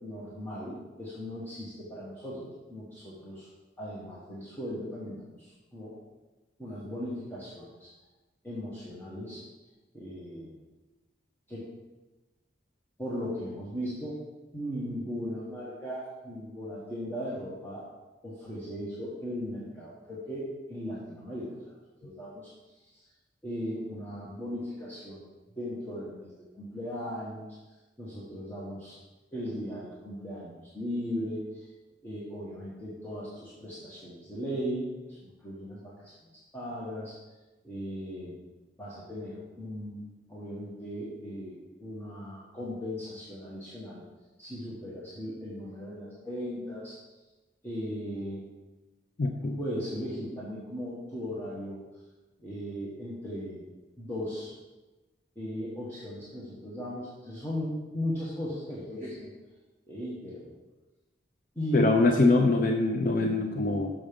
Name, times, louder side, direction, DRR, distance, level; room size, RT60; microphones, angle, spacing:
voice 1, 0.0-3.5 3.8-5.9 6.6-7.9 8.4-9.4 9.9-10.5 11.5-11.7 13.0-14.2 14.5-17.9 18.2-21.6 22.0-22.5 22.8-23.0 23.4-25.3 25.6-27.4 28.0-29.0 29.3-31.7 32.0-36.1 36.5-37.1 37.6-38.4 38.8-40.0 40.3-44.0 44.4-47.0 47.6-48.4 49.6-51.8 52.4-53.6 54.0-54.5 55.3-59.3 59.9-60.5 61.5-62.2 63.2-63.5, equal, 10° left, -8 dB, 1.2 m, -37 dB
voice 2, 49.2-49.6 61.7-63.9, left 2 dB, 45° left, 3 dB, 0.5 m, -23 dB
6.2 x 6.0 x 5.2 m, 1.2 s
head